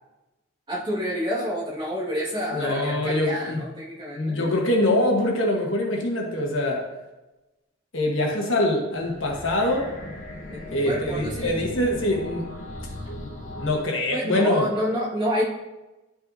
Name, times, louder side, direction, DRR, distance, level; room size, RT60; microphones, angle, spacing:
voice 1, 0.7-4.4 10.5-11.6 14.1-15.4, equal, 20° right, -6 dB, 1.8 m, -28 dB
voice 2, 2.5-3.6 4.1-6.9 7.9-9.9 10.7-12.5 13.6-14.7, left 1 dB, 60° left, 0 dB, 1.3 m, -24 dB
sound 1, 8.9-13.8, left 1 dB, 35° left, 1.3 m, -37 dB
11.5 x 5.5 x 2.7 m, 1.0 s
head